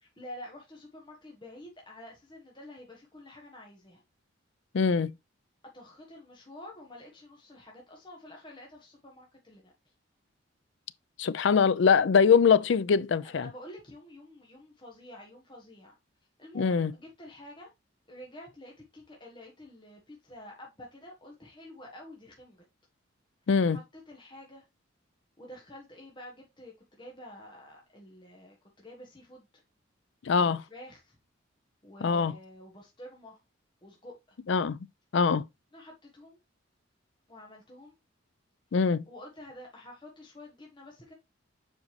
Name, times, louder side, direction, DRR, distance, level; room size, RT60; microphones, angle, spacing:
voice 1, 0.2-4.0 5.7-9.7 13.3-15.9 16.4-17.7 18.1-22.6 23.7-24.6 25.4-29.4 30.3-31.2 31.8-33.4 33.8-34.4 35.7-36.4 37.3-37.9 39.1-41.1, left 1 dB, 25° left, 1.4 m, -49 dB
voice 2, 4.7-5.1 11.2-13.5 16.5-16.9 23.5-23.8 30.3-30.6 32.0-32.3 34.5-34.8 35.1-35.4 38.7-39.0, left 6 dB, 65° left, 0.4 m, -23 dB
7.4 x 5.2 x 3.1 m
head